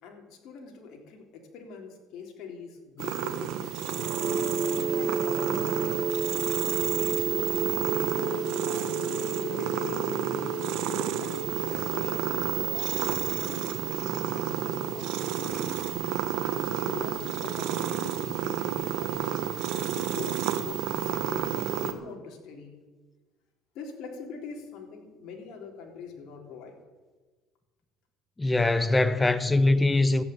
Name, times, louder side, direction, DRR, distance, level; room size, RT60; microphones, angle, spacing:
voice 1, 0.0-3.8 4.3-6.0 6.5-10.5 11.2-15.8 16.5-19.4 19.9-22.7 23.7-26.8, left 5 dB, 65° left, 3.7 m, -43 dB
sound 1, 3.0-21.9, right 10 dB, 75° right, 1.3 m, -31 dB
sound 2, 3.7-17.6, right 3 dB, 25° right, 3.8 m, -33 dB
voice 2, 28.4-30.2, left 2 dB, 15° left, 1.0 m, -22 dB
14.0 x 9.2 x 9.1 m
cardioid pair, 110°, 0 cm